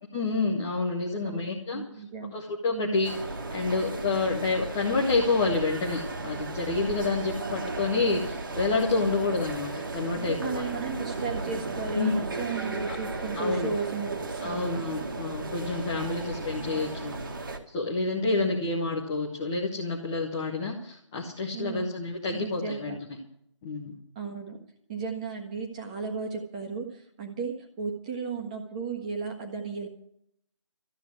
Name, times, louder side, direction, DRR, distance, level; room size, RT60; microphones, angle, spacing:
voice 1, 0.1-1.8 2.3-3.1 3.5-10.6 12.0-12.3 13.3-13.7 14.4-17.2 17.7-23.0 23.6-23.9, left 3 dB, 5° left, -3 dB, 0.6 m, -28 dB
voice 2, 1.2-2.4 2.7-3.0 10.1-15.0 16.0-16.1 18.2-18.4 21.5-21.9 22.3-23.0 24.1-24.6 24.9-29.9, right 5 dB, 15° right, 2 dB, 1.5 m, -35 dB
sound 1, 3.0-17.6, right 3 dB, 40° right, 1.8 m, -35 dB
14.0 x 8.2 x 9.6 m, 0.69 s
figure-of-eight pair, 170°, 16 cm